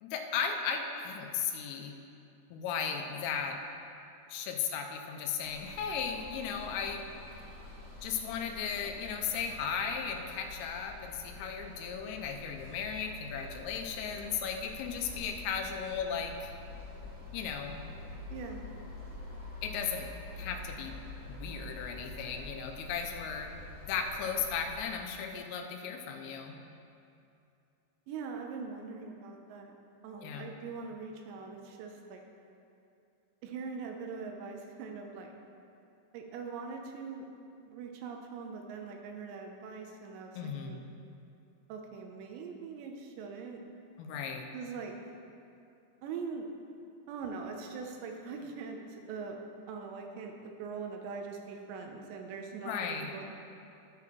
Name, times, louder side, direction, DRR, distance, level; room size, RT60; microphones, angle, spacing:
voice 1, 0.0-1.9 2.5-3.6 4.3-7.0 8.0-16.5 17.3-17.8 19.6-20.1 20.4-21.0 21.4-23.5 23.8-26.6 30.2-30.5 40.4-40.8 44.0-44.4 52.7-53.1, left 6 dB, 85° left, 3 dB, 3.2 m, -36 dB
sound 1, 5.4-24.8, left 2 dB, 50° right, 0.9 m, -47 dB
voice 2, 18.3-18.6 28.1-29.7 30.0-32.2 33.4-35.3 36.1-37.2 37.7-40.9 41.7-43.6 44.5-44.9 46.0-46.5 47.1-49.4 49.7-53.2, right 5 dB, 80° right, 2 dB, 2.6 m, -42 dB
10.5 x 9.7 x 3.0 m, 2.7 s
omnidirectional pair, 5.8 m